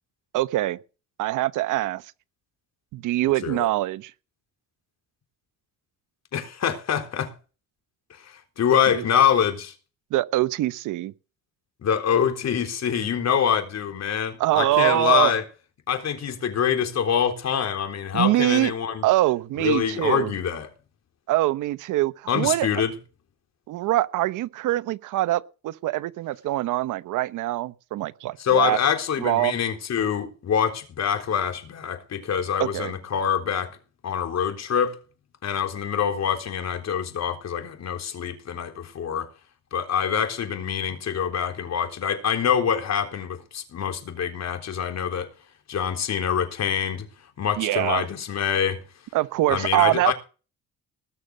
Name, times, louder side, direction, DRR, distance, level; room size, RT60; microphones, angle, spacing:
voice 1, 0.3-0.8 1.2-2.0 2.9-4.1 8.9-9.0 10.1-11.1 14.4-15.3 18.1-18.7 19.0-20.3 21.3-22.7 23.7-28.8 29.2-29.6 32.6-32.9 47.6-48.1 49.1-50.1, right 16 dB, 85° right, 0.9 m, -24 dB
voice 2, 6.3-7.3 8.2-9.7 11.8-15.4 15.9-19.0 19.6-20.7 22.3-22.9 28.4-33.8 34.0-35.0 35.4-39.3 39.7-45.3 45.7-47.1 47.4-48.8 49.5-50.1, left 8 dB, 60° left, 3.8 m, -25 dB
20.0 x 6.8 x 6.2 m
cardioid pair, 90°, 30 cm